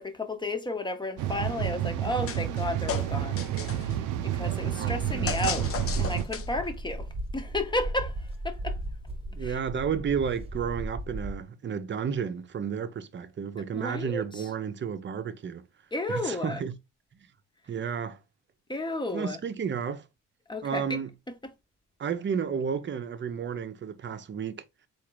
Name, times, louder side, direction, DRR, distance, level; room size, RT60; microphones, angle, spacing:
voice 1, 0.0-5.7 6.0-7.1 7.3-8.8 9.4-9.6 13.7-14.5 15.9-16.6 18.7-19.4 20.5-21.0 21.3-21.5, left 2 dB, 15° left, 0.9 m, -33 dB
sound 1, 1.2-6.3, right 11 dB, 90° right, 0.5 m, -30 dB
sound 2, 2.3-2.6 2.9-4.0 5.3-6.7, left 7 dB, 50° left, 0.6 m, -35 dB
voice 2, 4.7-5.3 9.3-15.6 16.1-16.7 17.7-18.2 19.1-20.0 20.6-21.1 22.0-24.6, right 7 dB, 40° right, 0.7 m, -32 dB
sound 3, 5.0-11.4, right 1 dB, 20° right, 1.2 m, -36 dB
3.7 x 2.6 x 4.5 m
cardioid pair, 90°, 30 cm